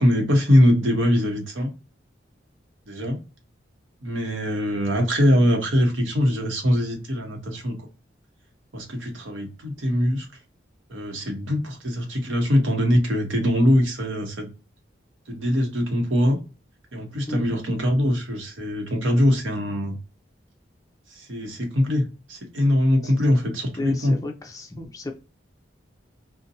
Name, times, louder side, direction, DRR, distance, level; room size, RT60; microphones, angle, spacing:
voice 1, 0.0-1.7 2.9-3.2 4.0-7.9 8.7-10.3 10.9-14.5 15.3-16.4 16.9-20.0 21.1-24.2, equal, 90° right, 3 dB, 0.9 m, -22 dB
voice 2, 17.3-17.7 23.0-23.1 23.8-25.1, left 2 dB, 20° left, 3 dB, 0.4 m, -34 dB
2.6 x 2.1 x 2.7 m, 0.31 s
head